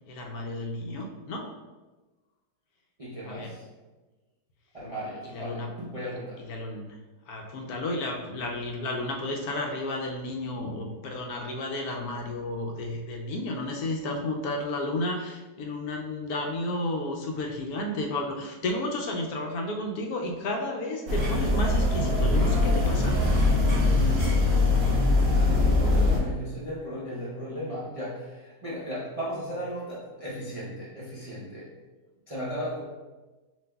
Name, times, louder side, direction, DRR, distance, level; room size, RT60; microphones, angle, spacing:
voice 1, 0.1-1.5 3.3-3.5 5.2-5.7 6.0-6.9 7.3-23.1, left 1 dB, 70° left, 1 dB, 1.0 m, -32 dB
voice 2, 3.0-3.6 4.7-6.4 25.4-31.7 32.3-32.8, equal, 40° right, -8 dB, 0.4 m, -36 dB
sound 1, 21.1-26.2, left 2 dB, 60° right, 2.1 m, -22 dB
7.1 x 2.7 x 2.2 m, 1.2 s
omnidirectional pair, 1.7 m